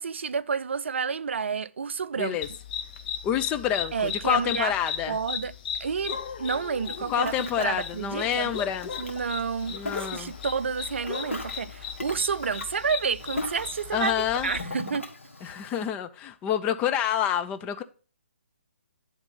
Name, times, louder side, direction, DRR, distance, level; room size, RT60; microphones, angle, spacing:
voice 1, 0.0-2.4 3.9-4.7 5.1-5.5 5.8-8.5 9.0-9.8 10.1-14.1 14.4-15.1, right 6 dB, 60° right, 0.4 m, -30 dB
voice 2, 2.2-2.5 3.2-5.2 7.1-8.9 9.7-10.3 13.9-14.5 15.4-17.8, left 9 dB, 15° left, 0.4 m, -28 dB
sound 1, 2.4-14.7, left 7 dB, 40° left, 0.8 m, -37 dB
Ocean, 6.8-15.9, left 2 dB, 75° left, 1.6 m, -40 dB
9.6 x 3.6 x 5.4 m
figure-of-eight pair, 135°, 7 cm